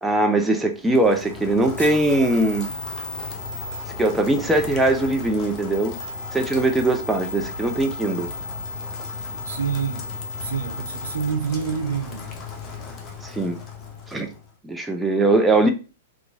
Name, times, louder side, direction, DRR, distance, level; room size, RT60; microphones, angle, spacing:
voice 1, 0.0-2.7 4.0-5.9 6.3-8.3 13.2-13.6 14.1-14.3 14.6-15.7, right 2 dB, 10° right, 0.5 m, -21 dB
Rain, 0.7-14.5, left 4 dB, 30° left, 0.7 m, -37 dB
sound 1, 1.7-11.3, left 3 dB, 80° left, 0.5 m, -36 dB
voice 2, 9.4-10.1 10.4-12.4, right 6 dB, 70° right, 0.6 m, -27 dB
3.0 x 2.5 x 3.4 m
hypercardioid pair, 115°, 0 cm